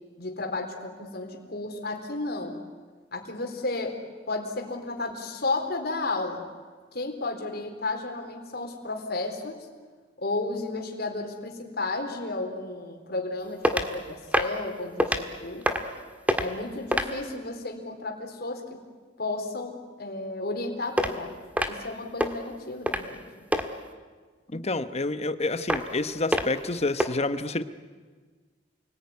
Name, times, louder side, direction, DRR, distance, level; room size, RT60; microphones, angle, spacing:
voice 1, 0.2-2.6 3.1-4.0 4.3-6.4 6.9-9.6 10.2-15.7 16.4-18.8 19.2-21.3 21.7-23.2, left 2 dB, 60° left, 3 dB, 4.0 m, -33 dB
sound 1, 13.6-13.9 14.3-14.6 15.0-15.2 15.6-16.0 16.3-16.5 16.9-17.2 21.0-21.1 21.6-21.9 22.2-22.3 22.9-23.1 23.5-23.6 25.7-26.0 26.3-26.6 27.0-27.1, equal, 10° right, 1.7 m, -25 dB
voice 2, 24.5-27.6, left 2 dB, 35° left, 11 dB, 1.1 m, -28 dB
29.0 x 20.0 x 9.7 m, 1.5 s
head